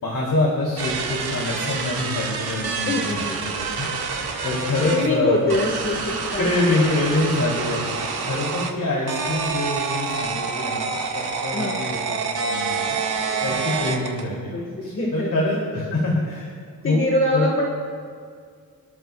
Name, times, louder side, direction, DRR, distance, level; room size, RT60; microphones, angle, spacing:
voice 1, 0.0-3.9 4.4-5.6 6.4-8.0 8.3-12.8 13.4-14.5 14.8-16.5 16.8-17.0 17.3-17.7, left 2 dB, 55° left, -3 dB, 2.9 m, -25 dB
sound 1, 0.8-5.1 5.5-8.7 9.1-14.3, right 5 dB, 80° right, 1.7 m, -27 dB
voice 2, 2.8-3.4 4.3-4.5 4.8-6.9 7.8-8.2 11.5-11.8 13.6-13.8 14.5-15.3 16.8-17.7, left 1 dB, 35° left, -1 dB, 1.6 m, -25 dB
27.0 x 13.5 x 2.3 m, 2.2 s
wide cardioid pair, 150°, 38 cm